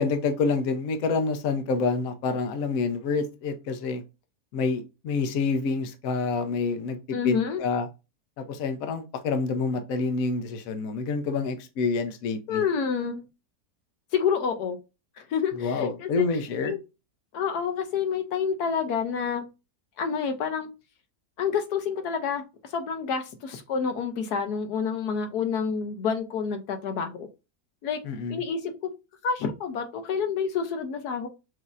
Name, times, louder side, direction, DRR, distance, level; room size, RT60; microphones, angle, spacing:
voice 1, 0.0-4.0 4.5-7.9 8.4-12.6 15.6-16.7 28.0-28.4, left 4 dB, 65° left, 1.1 m, -27 dB
voice 2, 7.1-7.6 12.5-13.2 14.1-14.8 15.2-16.3 16.6-16.8 17.3-19.5 20.0-20.7 21.4-27.3 27.8-28.0 28.3-28.9 29.2-31.3, left 6 dB, 80° left, 1.3 m, -28 dB
6.2 x 2.8 x 2.4 m
omnidirectional pair, 1.7 m